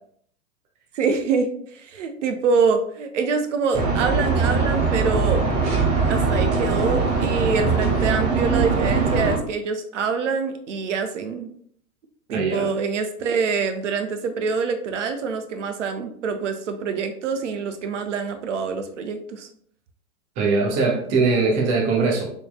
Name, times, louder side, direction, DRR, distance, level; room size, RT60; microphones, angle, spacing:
voice 1, 0.9-5.5 6.1-11.5 12.3-19.5, right 5 dB, 55° right, 7 dB, 0.6 m, -25 dB
sound 1, 3.7-9.4, right 4 dB, 35° right, 0.9 m, -21 dB
voice 2, 12.3-12.7 20.4-22.3, right 4 dB, 15° right, 0 dB, 0.4 m, -21 dB
4.1 x 3.6 x 2.3 m, 0.64 s
figure-of-eight pair, 105°, 44 cm